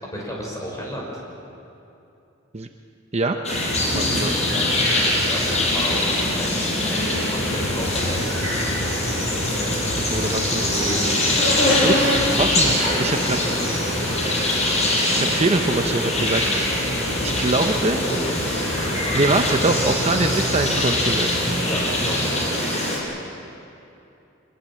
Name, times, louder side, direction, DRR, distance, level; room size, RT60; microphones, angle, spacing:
voice 1, 0.0-1.2 3.9-8.4 10.5-13.7 18.0-18.2 21.6-22.8, equal, 15° left, -2 dB, 6.0 m, -33 dB
sound 1, 3.4-23.0, left 1 dB, 35° left, 5.7 m, -23 dB
sound 2, 3.5-22.3, equal, 60° left, 5.5 m, -31 dB
voice 2, 3.9-4.4 10.1-10.7 11.8-12.0 12.4-13.4 15.1-16.4 17.2-18.0 19.1-21.4, right 2 dB, 35° right, 5 dB, 0.8 m, -23 dB
25.5 x 22.0 x 7.4 m, 2.7 s
head